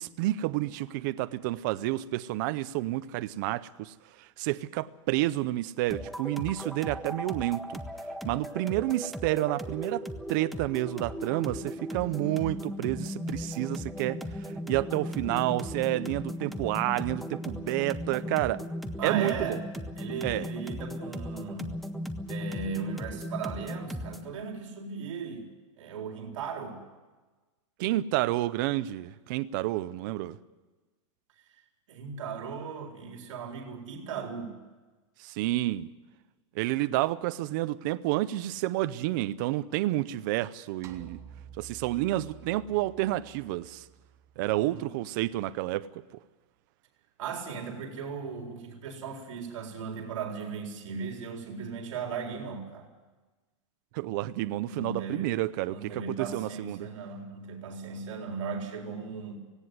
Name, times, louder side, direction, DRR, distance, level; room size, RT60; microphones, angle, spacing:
voice 1, 0.0-7.8 8.2-18.6 19.0-19.6 20.2-20.5 27.8-30.4 35.2-35.9 36.6-41.2 41.6-43.8 44.4-46.0 53.9-56.9, right 16 dB, 40° right, 0.6 m, -30 dB
sound 1, 5.9-24.3, equal, ahead, 0.6 m, -37 dB
voice 2, 19.0-19.7 20.0-21.7 22.3-25.5 25.8-26.8 31.9-34.5 44.4-44.9 47.2-52.9 54.7-55.3 55.7-59.4, right 5 dB, 75° right, 4.1 m, -37 dB
sound 2, 40.8-45.2, right 8 dB, 20° right, 1.1 m, -51 dB
18.0 x 17.0 x 9.6 m
supercardioid pair, 170°, 16 cm